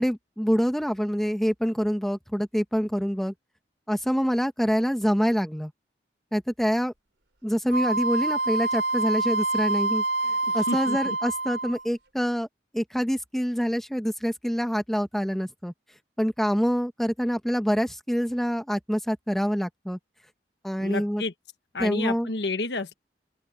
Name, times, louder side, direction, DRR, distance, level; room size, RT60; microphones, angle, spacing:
voice 1, 0.0-3.3 3.9-5.7 6.3-6.9 7.4-12.5 12.7-15.7 16.2-20.0 20.6-21.2 21.8-22.3, equal, ahead, 1.4 m, -26 dB
Wind instrument woodwind instrument, 7.7-11.9, right 2 dB, 75° right, 3.7 m, -27 dB
voice 2, 10.5-11.2 20.8-21.3 21.7-22.9, left 3 dB, 65° left, 1.4 m, -30 dB
open air
head